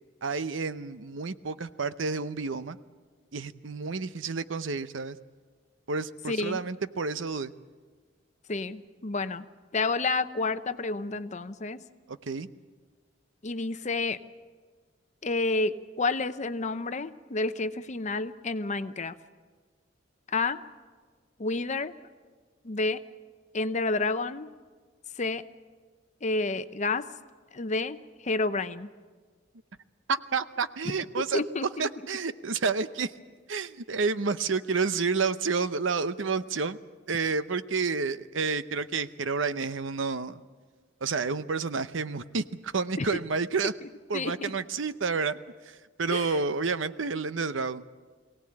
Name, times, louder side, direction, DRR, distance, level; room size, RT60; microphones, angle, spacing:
voice 1, 0.2-2.8 3.3-5.2 5.9-7.5 12.1-12.5 30.1-31.4 31.8-33.1 33.5-36.8 37.1-40.4 41.0-43.7 44.1-45.4 45.7-47.8, right 4 dB, 75° right, 13 dB, 0.8 m, -30 dB
voice 2, 6.3-6.6 8.5-9.5 9.7-11.8 13.4-14.2 15.2-19.1 20.3-20.6 21.4-21.9 22.6-23.0 23.5-24.5 25.2-25.4 26.2-27.1 27.5-28.0 28.2-28.9 30.8-30.9 31.3-31.9 43.0-43.1 44.1-44.5 46.1-46.4, left 3 dB, 40° left, 11 dB, 0.8 m, -29 dB
23.0 x 17.5 x 8.7 m, 1.5 s
head